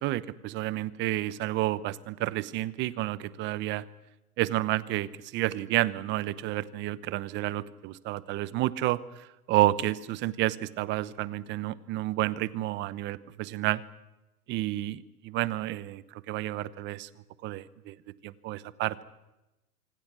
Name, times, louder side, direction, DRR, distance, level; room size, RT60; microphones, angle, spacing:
voice 1, 0.0-3.9 4.4-13.8 14.5-17.1 17.4-18.0 18.2-19.0, right 16 dB, 25° right, 18 dB, 0.9 m, -30 dB
26.0 x 25.5 x 6.2 m, 0.98 s
hypercardioid pair, 135°, 46 cm